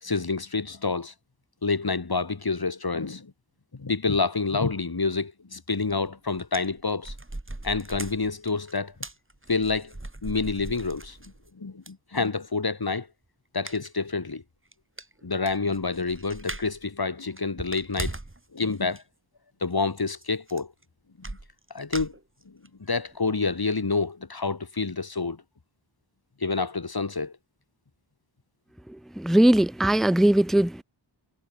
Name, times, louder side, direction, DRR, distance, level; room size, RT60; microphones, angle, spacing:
voice 1, 0.0-1.1 1.6-3.3 3.7-7.1 7.6-8.9 9.5-9.9 10.2-11.2 11.6-13.1 13.5-14.4 15.2-18.1 18.5-19.0 19.6-20.7 21.3-21.4 21.7-22.1 22.5-22.6 22.8-25.4 26.4-27.4, left 4 dB, 55° left, 3.5 m, -28 dB
sound 1, 5.9-6.1 6.3-11.5 11.9-12.0 13.7-14.0 14.3-14.4 14.7-14.8 15.0-16.8 17.2-18.4 18.7-19.0 20.2-20.3 20.5-20.8 21.2-22.7 23.1-23.2 23.5-23.6, right 2 dB, 25° right, 5.9 m, -39 dB
voice 2, 29.2-30.8, right 1 dB, ahead, 0.4 m, -20 dB
wide cardioid pair, 65°, 45 cm